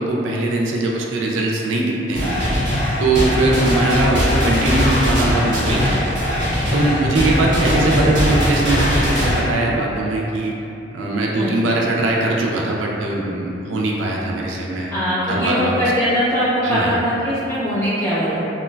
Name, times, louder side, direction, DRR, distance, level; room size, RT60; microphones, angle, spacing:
voice 1, 0.0-2.3 3.0-6.2 6.7-10.6 10.9-14.9 15.3-15.7 16.6-16.9, right 2 dB, 90° right, -2 dB, 0.4 m, -21 dB
sound 1, 2.1-9.4, equal, 70° right, 0.9 m, -20 dB
voice 2, 14.9-18.4, equal, 15° left, -12 dB, 0.7 m, -21 dB
2.9 x 2.2 x 2.2 m, 2.8 s
head